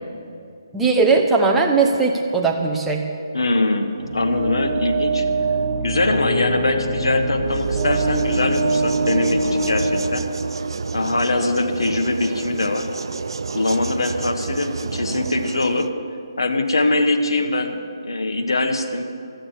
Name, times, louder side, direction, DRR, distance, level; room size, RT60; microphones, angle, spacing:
voice 1, 0.7-3.1, right 4 dB, 5° right, 0 dB, 0.8 m, -18 dB
voice 2, 3.3-5.3 5.8-10.2 10.9-12.9 13.5-15.9 16.4-19.1, left 2 dB, 80° left, 6 dB, 1.3 m, -22 dB
sound 1, 4.0-10.9, right 3 dB, 55° right, 2.9 m, -24 dB
sound 2, 7.5-15.9, right 4 dB, 70° right, 0.4 m, -30 dB
12.5 x 9.0 x 7.3 m, 2.4 s
figure-of-eight pair, 155°, 2 cm